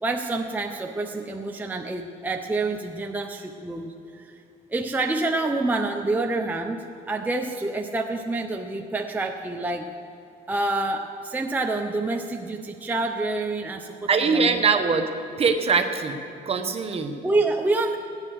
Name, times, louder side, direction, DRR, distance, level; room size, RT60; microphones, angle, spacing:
voice 1, 0.0-4.4 4.7-9.9 10.5-14.6 14.9-15.0 17.2-18.0, right 2 dB, 10° right, 2 dB, 0.7 m, -27 dB
voice 2, 14.1-15.1 15.4-16.2 16.5-17.2, right 5 dB, 35° right, 6 dB, 1.0 m, -22 dB
15.5 x 9.8 x 6.4 m, 2.5 s
cardioid pair, 110°, 17 cm